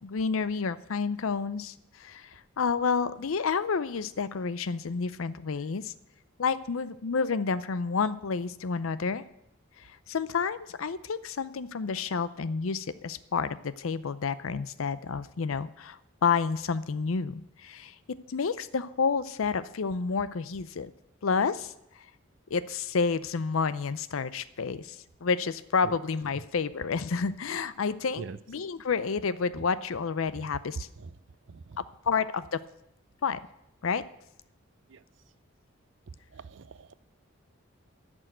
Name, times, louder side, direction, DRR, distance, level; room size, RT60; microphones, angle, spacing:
voice 1, 0.0-5.9 6.4-9.2 9.8-18.0 18.3-20.9 21.2-21.7 22.5-30.9 32.1-32.6 33.2-33.4 33.8-34.0, left 5 dB, 85° left, 16 dB, 0.6 m, -30 dB
voice 2, 36.3-36.9, right 4 dB, 65° right, 15 dB, 0.5 m, -43 dB
11.0 x 6.3 x 9.1 m, 0.83 s
head